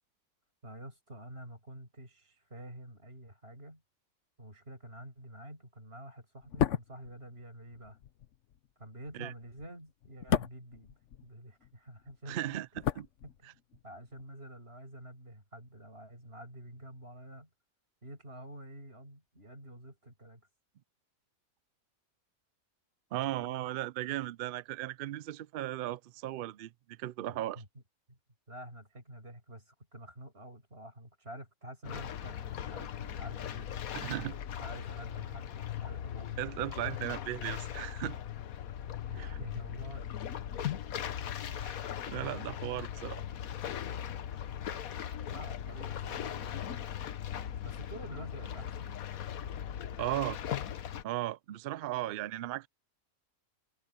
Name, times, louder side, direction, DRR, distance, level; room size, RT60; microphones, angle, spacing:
voice 1, 0.6-3.8 4.4-8.0 8.8-10.9 11.2-12.6 13.2-13.6 13.8-17.5 18.0-20.5 23.2-23.7 27.2-27.8 28.1-28.2 28.5-33.7 34.6-36.6 39.1-40.4 45.3-46.8 47.6-49.0, right 1 dB, 45° right, 8.1 m, -48 dB
sound 1, 6.4-11.7 12.0-13.8 14.1-14.3, left 9 dB, 60° left, 1.1 m, -35 dB
voice 2, 12.3-12.7 13.0-13.1 23.1-27.6 33.9-34.4 36.4-38.2 39.2-39.4 41.5-43.2 50.0-50.4 51.0-52.7, right 14 dB, 85° right, 0.4 m, -36 dB
sound 2, 31.8-51.0, left 10 dB, 80° left, 1.3 m, -39 dB
omnidirectional pair, 1.5 m